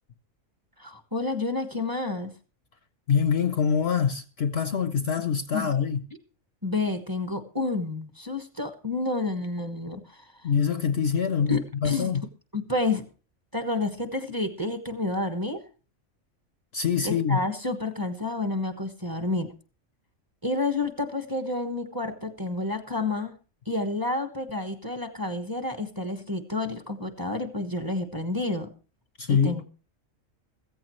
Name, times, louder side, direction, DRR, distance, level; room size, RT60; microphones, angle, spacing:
voice 1, 0.8-2.3 5.5-5.7 6.6-10.2 11.5-12.1 12.5-13.0 13.5-15.6 17.0-19.5 20.4-23.3 23.7-28.7 29.3-29.6, left 2 dB, 15° right, 1.2 m, -29 dB
voice 2, 3.1-6.0 10.4-12.2 16.7-17.4 29.2-29.6, left 7 dB, 55° left, 0.9 m, -25 dB
15.0 x 15.0 x 3.1 m
omnidirectional pair, 1.4 m